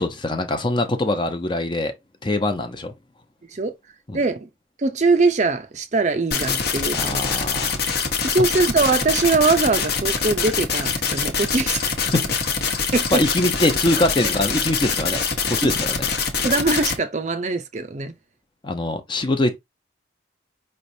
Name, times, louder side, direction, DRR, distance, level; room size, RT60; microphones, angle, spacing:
voice 1, 0.0-1.9 2.2-2.9 4.1-4.2 6.9-8.1 12.0-12.3 13.1-15.2 15.5-16.1 18.6-19.6, left 1 dB, 25° left, 0.6 m, -23 dB
voice 2, 4.1-4.5 4.8-7.2 8.2-11.9 12.9-13.2 15.6-15.7 16.4-18.1, right 3 dB, 40° right, 0.5 m, -22 dB
sound 1, 6.3-17.0, left 5 dB, 55° left, 1.0 m, -24 dB
5.0 x 3.3 x 2.6 m
head